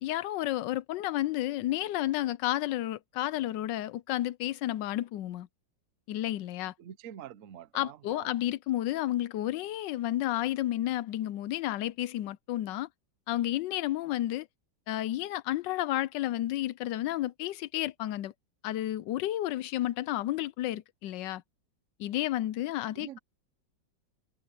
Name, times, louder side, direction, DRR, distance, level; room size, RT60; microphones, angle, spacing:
voice 1, 0.0-5.5 6.1-6.7 7.7-12.9 13.3-14.5 14.9-18.3 18.6-21.4 22.0-23.2, left 14 dB, 85° left, 1.3 m, -31 dB
voice 2, 6.8-8.3 22.9-23.2, right 10 dB, 60° right, 0.9 m, -46 dB
omnidirectional pair, 1.9 m